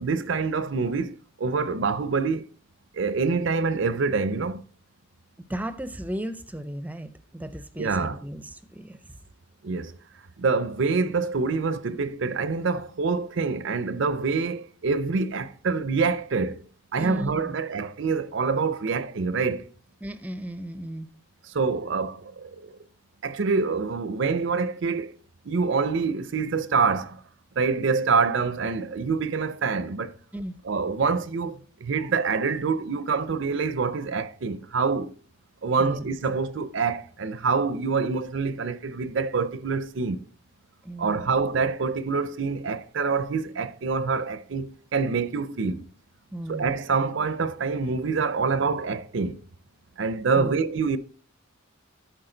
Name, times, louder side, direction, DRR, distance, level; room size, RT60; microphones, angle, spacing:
voice 1, 0.0-2.5 2.9-4.6 7.8-8.2 9.6-9.9 10.4-16.6 16.9-19.6 21.5-22.7 23.2-25.1 25.4-27.2 27.6-30.1 30.6-35.1 35.6-40.2 41.0-45.9 46.5-49.4 50.0-51.0, right 4 dB, 65° right, 0.6 m, -26 dB
voice 2, 5.5-9.2 17.0-17.6 20.0-21.1 30.3-30.6 35.8-36.1 40.8-41.3 46.3-46.8 50.3-50.6, right 1 dB, 10° right, 0.5 m, -35 dB
12.5 x 4.6 x 3.8 m
head